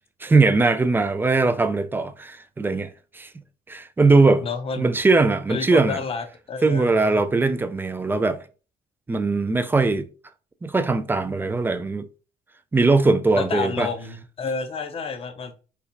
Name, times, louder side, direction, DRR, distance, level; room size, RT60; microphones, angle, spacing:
voice 1, 0.2-3.3 3.7-4.4 4.8-6.0 6.6-8.4 9.1-10.1 10.6-12.1 12.7-13.9, right 3 dB, 10° right, 0.3 m, -20 dB
voice 2, 4.4-4.9 5.5-7.2 13.4-15.5, left 5 dB, 35° left, 0.6 m, -30 dB
4.4 x 2.3 x 2.6 m
cardioid pair, 110°, 17 cm